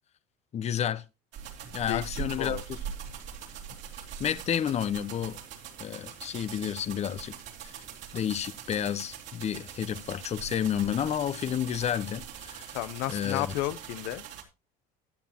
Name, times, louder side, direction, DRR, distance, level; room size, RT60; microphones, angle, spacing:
voice 1, 0.5-1.0 1.7-2.8 4.0-5.4 5.8-7.3 7.6-7.8 8.1-12.8 13.1-13.5, left 9 dB, 35° left, 0.8 m, -31 dB
sound 1, 1.3-14.4, right 8 dB, 65° right, 2.7 m, -42 dB
voice 2, 1.9-2.6 12.7-14.2, left 16 dB, 75° left, 0.7 m, -33 dB
14.5 x 9.3 x 2.9 m
supercardioid pair, 105°, 20 cm